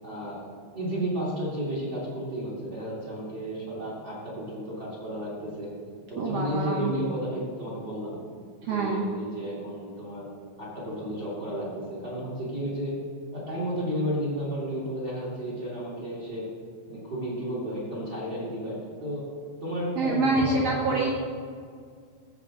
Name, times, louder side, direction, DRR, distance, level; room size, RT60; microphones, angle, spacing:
voice 1, 0.0-5.7 6.1-8.2 8.6-10.3 10.6-12.9 13.3-16.5 16.9-19.2 19.6-21.1, equal, 30° right, -6 dB, 2.6 m, -32 dB
voice 2, 6.2-6.9 8.6-9.0 20.0-21.1, right 3 dB, 80° right, -1 dB, 1.4 m, -26 dB
15.0 x 7.5 x 3.7 m, 2.1 s
omnidirectional pair, 4.2 m